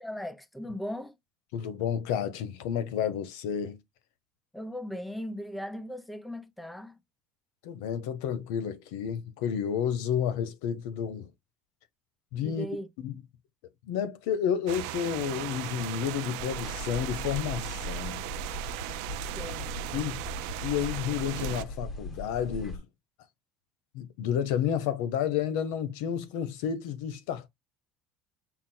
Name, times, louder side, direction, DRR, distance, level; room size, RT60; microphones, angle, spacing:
voice 1, 0.0-1.2 4.5-7.0 12.4-12.9 19.3-19.7, equal, ahead, 0.5 m, -38 dB
voice 2, 1.5-3.8 7.6-11.3 12.3-12.7 13.0-13.2 13.8-18.2 19.9-20.2 20.6-22.8 23.9-27.5, left 8 dB, 85° left, 0.9 m, -31 dB
sound 1, 14.7-21.6, right 17 dB, 80° right, 0.4 m, -37 dB
sound 2, 16.4-22.8, left 2 dB, 25° left, 1.2 m, -39 dB
5.9 x 2.1 x 4.4 m
cardioid pair, 165°, 0 cm